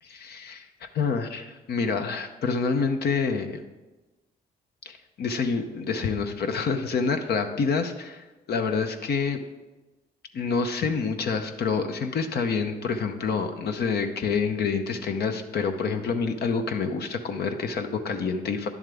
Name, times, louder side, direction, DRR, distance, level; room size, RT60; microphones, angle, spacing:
voice 1, 0.0-3.6 4.9-9.4 10.3-18.7, left 5 dB, 65° left, 6 dB, 0.8 m, -27 dB
10.0 x 7.2 x 3.5 m, 1.1 s
supercardioid pair, 65°, 18 cm